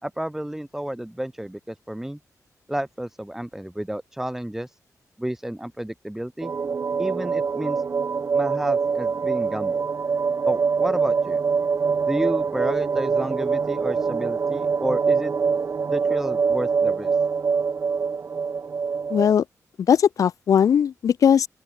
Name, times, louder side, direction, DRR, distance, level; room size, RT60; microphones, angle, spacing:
voice 1, 0.0-2.2 2.7-4.8 5.2-6.5 7.0-7.8 8.3-9.9 10.5-11.4 12.1-15.3 15.9-17.1, right 1 dB, 5° right, 2.3 m, -30 dB
sound 1, 6.4-19.3, right 5 dB, 45° right, 1.1 m, -24 dB
voice 2, 19.1-19.4 19.9-21.5, left 8 dB, 75° left, 0.6 m, -18 dB
open air
wide cardioid pair, 120°, 6 cm